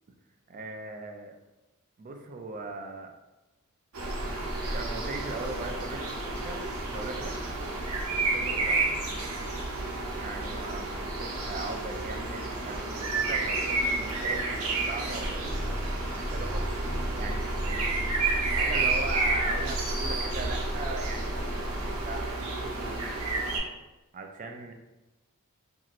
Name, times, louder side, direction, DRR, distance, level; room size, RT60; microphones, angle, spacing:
voice 1, 0.5-1.4 2.0-3.1 4.6-6.6 6.9-7.4 8.2-8.9 10.2-15.8 16.1-16.6 17.2-21.4 22.0-23.1 24.1-24.7, right 3 dB, 35° right, 4 dB, 0.3 m, -39 dB
sound 1, 3.9-23.6, right 3 dB, 85° right, 0.6 m, -31 dB
sound 2, 15.5-22.3, equal, 25° left, 0.7 m, -34 dB
2.9 x 2.6 x 2.4 m, 1.1 s
head